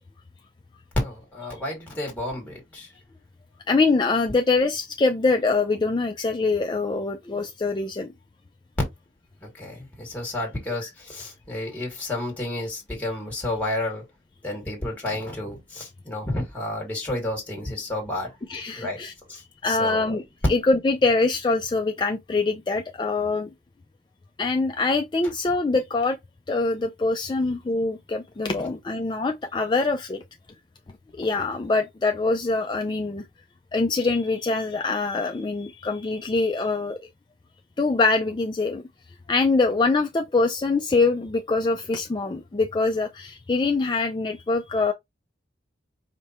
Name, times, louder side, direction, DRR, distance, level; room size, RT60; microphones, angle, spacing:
voice 1, 0.9-2.9 9.5-14.0 14.4-18.3 18.7-19.0 19.3-20.2, left 1 dB, 10° left, 1.7 m, -31 dB
voice 2, 3.7-8.1 18.5-19.1 19.6-20.2 20.5-23.5 24.4-26.2 26.5-30.2 31.2-33.3 33.7-37.0 37.8-38.8 39.3-44.9, left 3 dB, 25° left, 0.3 m, -24 dB
5.1 x 2.1 x 4.2 m
head